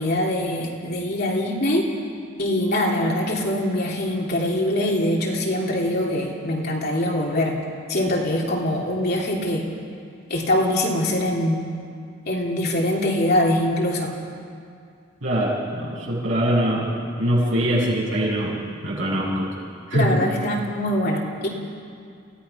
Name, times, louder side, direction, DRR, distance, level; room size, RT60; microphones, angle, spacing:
voice 1, 0.0-1.9 2.4-7.6 7.9-9.7 10.3-11.7 12.3-14.1 19.9-21.5, left 1 dB, 55° left, -2 dB, 3.3 m, -23 dB
voice 2, 15.2-16.9 17.2-18.6 18.8-19.5 19.9-20.1, right 1 dB, 75° right, -5 dB, 7.4 m, -22 dB
29.0 x 17.0 x 5.8 m, 2.4 s
head